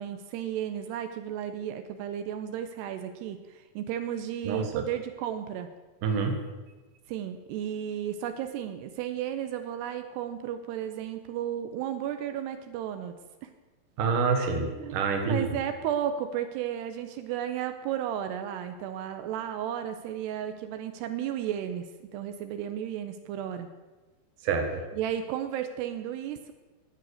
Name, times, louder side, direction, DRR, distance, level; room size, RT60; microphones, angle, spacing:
voice 1, 0.0-5.7 7.1-13.2 13.4-13.5 14.4-23.7 24.9-26.5, right 10 dB, 85° right, 8 dB, 2.8 m, -34 dB
voice 2, 4.4-4.8 6.0-6.4 14.0-15.4 24.4-24.8, right 5 dB, 60° right, 5 dB, 2.8 m, -27 dB
21.0 x 7.8 x 6.5 m, 1.2 s
omnidirectional pair, 4.9 m